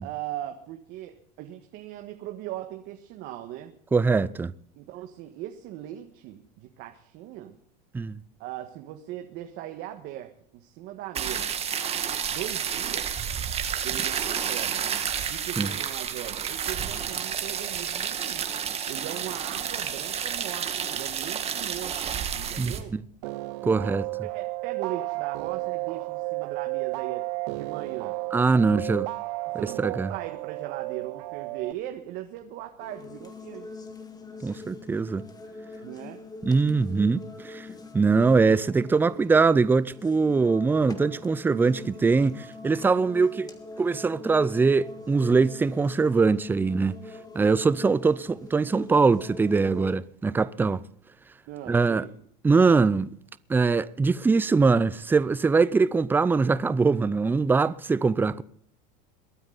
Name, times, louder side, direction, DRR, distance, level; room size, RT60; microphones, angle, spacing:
voice 1, 0.0-3.7 4.7-7.6 8.4-11.5 12.3-13.1 13.8-14.8 15.3-18.4 18.9-22.0 22.3-23.0 23.6-23.9 24.2-28.2 28.6-29.1 29.4-33.7 35.8-36.2 51.5-52.1, right 13 dB, 55° right, 1.6 m, -39 dB
voice 2, 3.9-4.5 7.9-8.2 15.6-15.7 22.6-23.0 23.6-24.0 28.3-29.1 29.8-30.1 34.4-35.2 36.4-37.7 37.9-43.5 43.8-47.0 47.3-50.8 51.7-52.1 52.4-53.1 53.5-58.4, right 4 dB, 10° right, 0.5 m, -22 dB
sound 1, 11.1-22.8, right 8 dB, 30° right, 1.8 m, -30 dB
sound 2, 23.2-31.7, right 25 dB, 70° right, 0.5 m, -33 dB
sound 3, 32.8-49.9, left 3 dB, 20° left, 1.9 m, -43 dB
22.5 x 9.4 x 4.0 m
supercardioid pair, 130°, 21 cm